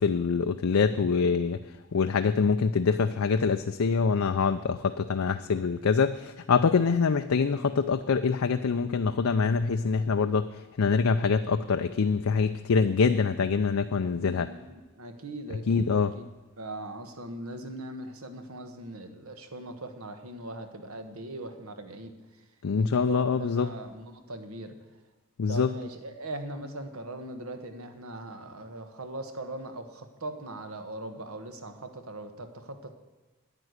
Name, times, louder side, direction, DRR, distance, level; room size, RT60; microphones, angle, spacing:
voice 1, 0.0-1.6 1.9-10.5 10.8-14.5 15.7-16.1 22.6-23.7 25.4-25.7, left 5 dB, 70° left, 8 dB, 0.5 m, -25 dB
voice 2, 14.1-16.1 16.6-22.1 22.8-24.7 25.5-33.0, right 1 dB, 75° right, 7 dB, 1.4 m, -40 dB
9.8 x 9.1 x 8.0 m, 1.2 s
head